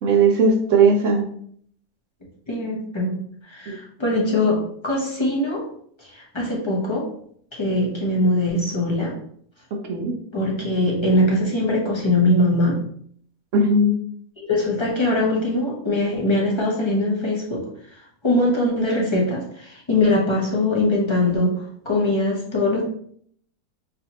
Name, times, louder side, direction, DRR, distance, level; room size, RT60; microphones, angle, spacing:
voice 1, 0.0-1.2 3.7-3.8 9.9-10.1 13.5-13.9, right 3 dB, 65° right, 2 dB, 0.8 m, -17 dB
voice 2, 2.5-3.2 3.5-5.7 6.1-7.1 7.5-9.1 10.3-12.8 14.5-17.7 18.2-21.5 21.8-22.8, left 1 dB, 30° left, -3 dB, 0.5 m, -21 dB
4.2 x 2.7 x 2.8 m, 0.62 s
omnidirectional pair, 1.6 m